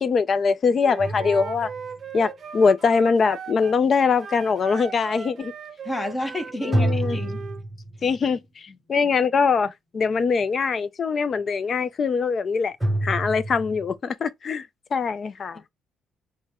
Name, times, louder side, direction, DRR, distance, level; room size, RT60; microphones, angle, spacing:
voice 1, 0.0-1.7 2.1-5.5 6.6-7.2 8.0-12.7 13.0-15.6, left 5 dB, 40° left, 0.4 m, -23 dB
Wind instrument woodwind instrument, 0.8-3.8 4.2-7.6, right 7 dB, 45° right, 0.6 m, -38 dB
sound 1, 1.0-2.2 6.7-8.3 12.8-13.9, right 1 dB, 10° right, 0.9 m, -28 dB
voice 2, 5.8-7.4 15.5-15.6, left 1 dB, 20° left, 0.9 m, -31 dB
4.5 x 2.1 x 3.6 m
cardioid pair, 120°, 0 cm